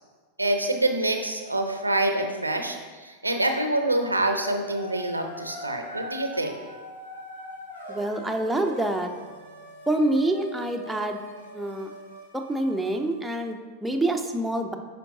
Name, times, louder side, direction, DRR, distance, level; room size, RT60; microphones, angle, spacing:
voice 1, 0.4-6.6, right 1 dB, 85° right, 5 dB, 0.6 m, -26 dB
sound 1, 4.7-13.5, left 1 dB, 75° left, 1.3 m, -42 dB
voice 2, 7.9-9.1 9.9-11.2 11.5-11.9 12.3-14.8, right 1 dB, 5° right, 3 dB, 0.5 m, -26 dB
9.5 x 4.5 x 2.7 m, 1.4 s
figure-of-eight pair, 90°, 0 cm